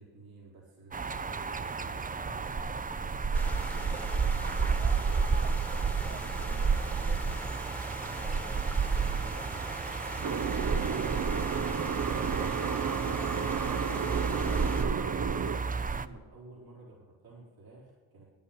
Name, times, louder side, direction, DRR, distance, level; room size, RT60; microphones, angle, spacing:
voice 1, 0.0-2.9 3.3-7.1 8.1-15.3 15.7-18.3, right 2 dB, 75° right, -5 dB, 4.5 m, -52 dB
sound 1, 0.9-16.1, right 5 dB, 25° right, 0.6 m, -31 dB
sound 2, 3.3-14.8, left 1 dB, 5° left, 1.3 m, -43 dB
sound 3, 10.2-15.6, right 7 dB, 55° right, 0.8 m, -33 dB
10.5 x 8.7 x 8.8 m, 1.2 s
cardioid pair, 55°, 37 cm